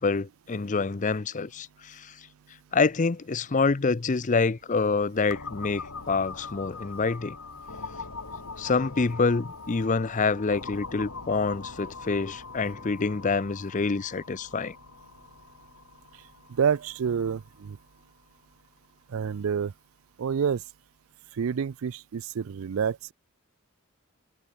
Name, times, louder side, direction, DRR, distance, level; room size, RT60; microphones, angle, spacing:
voice 1, 0.0-2.1 2.7-7.4 8.6-14.7, left 4 dB, 35° left, 0.5 m, -26 dB
sound 1, 5.3-18.9, left 4 dB, 85° left, 3.7 m, -42 dB
voice 2, 16.5-17.8 19.1-19.7 20.2-20.6 21.3-23.1, right 7 dB, 70° right, 0.4 m, -28 dB
head